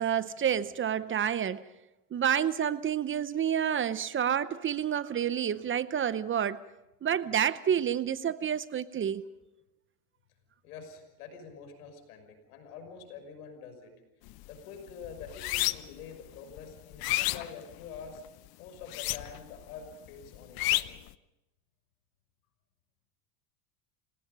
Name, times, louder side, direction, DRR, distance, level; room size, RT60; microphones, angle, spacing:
voice 1, 0.0-1.6 2.1-6.6 7.0-9.3, right 9 dB, 30° right, 0.8 m, -29 dB
voice 2, 10.6-13.9 14.5-18.2 18.6-20.9, left 6 dB, 85° left, 6.1 m, -46 dB
sound 1, 14.3-14.5 14.9-16.0 16.5-18.2 18.8-19.6 19.8-21.1, left 19 dB, 55° left, 0.9 m, -31 dB
29.0 x 18.0 x 5.5 m
supercardioid pair, 105°, 44 cm